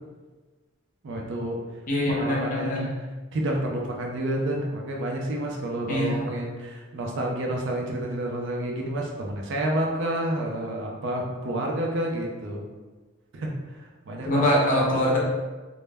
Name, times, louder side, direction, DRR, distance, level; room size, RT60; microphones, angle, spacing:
voice 1, 1.0-1.6 2.1-2.9 3.3-12.6 13.3-13.5 14.1-14.4 14.7-14.8, right 1 dB, 60° right, 0 dB, 0.5 m, -29 dB
voice 2, 1.9-2.9 5.9-6.2 14.2-15.2, left 1 dB, 40° left, -4 dB, 0.6 m, -23 dB
2.1 x 2.0 x 3.3 m, 1.3 s
head